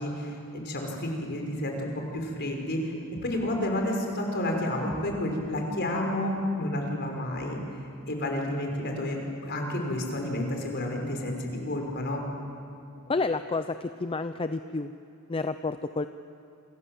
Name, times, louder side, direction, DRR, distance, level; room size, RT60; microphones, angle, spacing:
voice 1, 0.0-2.9 3.2-7.6 8.1-12.2, left 1 dB, 50° left, 1 dB, 5.5 m, -30 dB
voice 2, 13.1-14.9 15.3-16.1, left 3 dB, 25° left, 10 dB, 0.5 m, -30 dB
28.5 x 27.0 x 7.6 m, 2.8 s
head